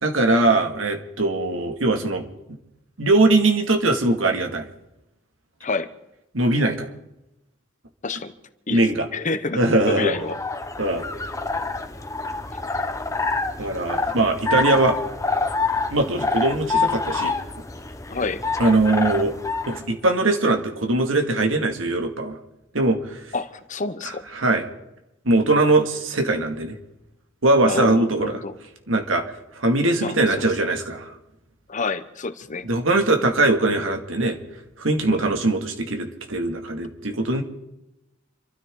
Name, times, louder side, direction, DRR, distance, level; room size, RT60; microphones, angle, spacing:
voice 1, 0.0-2.3 3.0-4.7 6.3-6.9 8.7-9.1 9.5-10.2 10.8-11.1 13.6-15.0 15.9-17.4 18.6-19.3 19.7-22.4 22.7-23.2 24.3-24.6 25.2-26.8 27.4-28.4 28.9-31.1 32.6-34.4 34.8-37.4, right 2 dB, 90° right, 4 dB, 2.2 m, -21 dB
voice 2, 9.1-10.4 18.1-18.4 23.3-24.2 27.6-28.5 30.0-30.5 31.7-32.7 35.0-35.2, left 3 dB, 40° left, 10 dB, 1.0 m, -28 dB
sound 1, 10.1-19.8, left 3 dB, 15° left, 1.0 m, -27 dB
27.5 x 13.0 x 3.8 m, 0.91 s
head